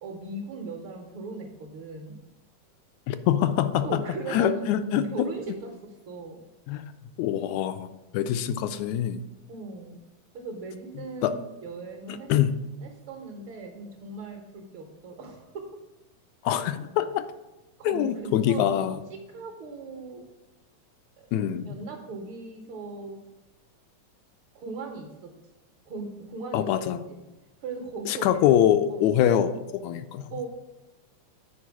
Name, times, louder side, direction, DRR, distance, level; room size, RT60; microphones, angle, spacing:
voice 1, 0.0-2.2 3.8-4.9 5.1-6.4 9.5-10.0 10.3-12.3 12.8-15.8 16.4-16.6 17.8-18.7 19.1-20.3 21.2-21.3 21.7-23.2 24.5-25.3 25.8-26.7 27.1-27.2 27.6-28.4 28.9-29.1 30.3-30.5, right 3 dB, 60° right, 1 dB, 1.6 m, -38 dB
voice 2, 3.1-4.0 4.3-5.1 6.7-6.9 7.2-9.2 11.2-11.3 12.3-12.5 16.4-17.3 17.8-19.0 21.3-21.8 26.5-27.0 28.1-29.5 29.8-30.3, left 10 dB, 80° left, 11 dB, 1.8 m, -24 dB
8.6 x 4.8 x 4.7 m, 1.0 s
omnidirectional pair, 3.4 m